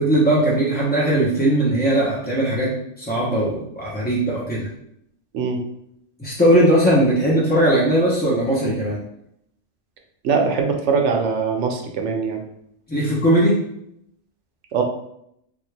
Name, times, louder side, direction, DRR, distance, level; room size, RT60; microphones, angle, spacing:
voice 1, 0.0-4.7 6.2-9.0 12.9-13.6, right 1 dB, 15° left, -7 dB, 0.3 m, -19 dB
voice 2, 10.2-12.4 14.7-14.8, right 5 dB, 75° right, 3 dB, 0.9 m, -21 dB
3.3 x 2.3 x 3.2 m, 0.76 s
omnidirectional pair, 1.3 m